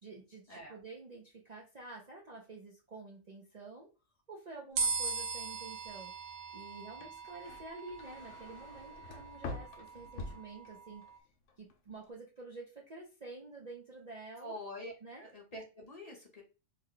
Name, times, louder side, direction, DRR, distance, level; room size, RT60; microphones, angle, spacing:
voice 1, 0.0-3.9 4.3-11.0 11.6-14.6 15.0-15.3, right 3 dB, 45° right, -2 dB, 0.6 m, -49 dB
sound 1, 4.8-11.2, right 4 dB, 80° right, 1.0 m, -40 dB
sound 2, 6.9-11.2 11.5-12.0, left 3 dB, 75° left, 0.9 m, -47 dB
voice 2, 14.4-16.4, left 1 dB, 35° left, -1 dB, 0.9 m, -46 dB
3.3 x 2.2 x 3.7 m, 0.33 s
omnidirectional pair, 1.3 m